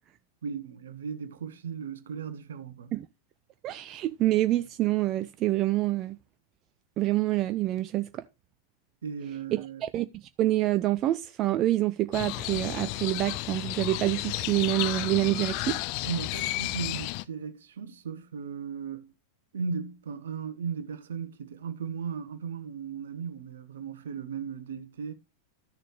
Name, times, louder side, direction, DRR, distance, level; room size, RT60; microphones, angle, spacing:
voice 1, 0.4-2.9 9.0-9.8 16.0-19.1 19.5-25.1, right 6 dB, 65° right, 1.2 m, -36 dB
voice 2, 3.6-6.2 7.0-8.2 9.5-10.1 10.4-15.8, right 15 dB, 35° right, 0.5 m, -27 dB
Crow, 12.1-17.2, left 19 dB, 45° left, 0.5 m, -32 dB
13.0 x 6.7 x 3.1 m
figure-of-eight pair, 90°, 0 cm